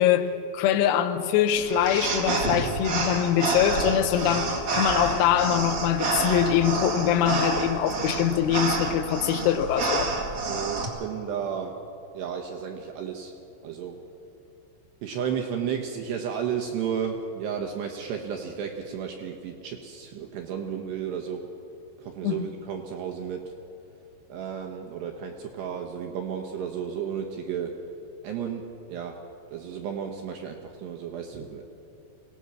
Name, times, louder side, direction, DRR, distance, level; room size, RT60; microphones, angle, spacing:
voice 1, 0.0-10.1 22.2-22.4, left 10 dB, 90° left, 9 dB, 3.8 m, -23 dB
sound 1, 1.6-10.9, right 3 dB, 50° right, 1.9 m, -28 dB
voice 2, 10.4-11.8 12.1-13.3 13.6-14.0 15.0-21.4 22.0-23.5 24.3-27.7 28.2-29.2 29.5-31.7, right 7 dB, 75° right, 2 dB, 2.6 m, -33 dB
23.5 x 18.0 x 6.2 m, 2.7 s
omnidirectional pair, 6.0 m